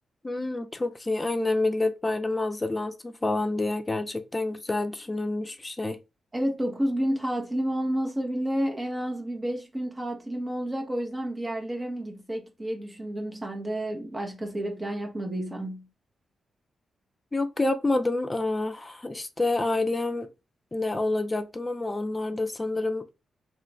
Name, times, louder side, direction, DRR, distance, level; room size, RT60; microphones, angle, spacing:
voice 1, 0.2-6.0 17.3-20.3 20.7-23.0, left 2 dB, 25° left, 0.6 m, -28 dB
voice 2, 6.3-15.9, right 1 dB, 25° right, 0.9 m, -30 dB
3.0 x 2.4 x 3.2 m
supercardioid pair, 45°, 0 cm